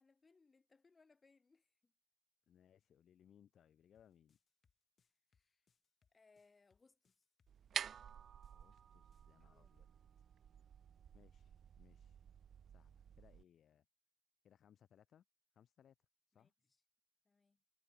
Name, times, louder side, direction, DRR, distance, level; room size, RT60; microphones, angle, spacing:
voice 1, 0.0-1.9 5.0-5.7 6.1-7.2 9.4-9.8 16.3-16.8 17.2-17.6, left 4 dB, 30° left, 3.4 m, -72 dB
voice 2, 2.5-4.4 8.5-9.9 11.1-12.3 12.7-13.9 14.4-15.2 15.5-16.5, left 9 dB, 80° left, 4.4 m, -69 dB
sound 1, 3.9-9.3, left 6 dB, 50° left, 6.4 m, -81 dB
sound 2, 7.5-13.4, right 8 dB, 70° right, 0.7 m, -50 dB
wide cardioid pair, 135°, 0 cm